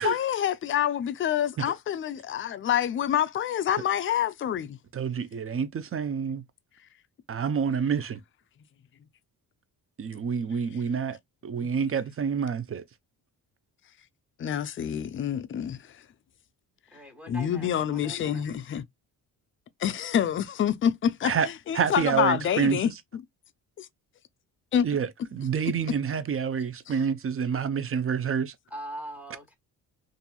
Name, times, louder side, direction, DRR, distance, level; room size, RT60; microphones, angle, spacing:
voice 1, 0.0-4.8 11.6-11.9 14.4-15.8 17.3-18.8 19.8-23.2 23.8-23.9 24.7-24.9 26.9-27.0, left 9 dB, 30° left, 0.4 m, -27 dB
voice 2, 4.9-6.4 7.3-8.2 10.0-11.2 11.4-12.8 21.2-21.5 21.7-22.8 24.8-28.5, right 6 dB, 35° right, 0.5 m, -28 dB
voice 3, 16.9-18.5 28.7-29.5, right 1 dB, 5° right, 1.1 m, -41 dB
2.8 x 2.6 x 2.2 m
cardioid pair, 85°, 41 cm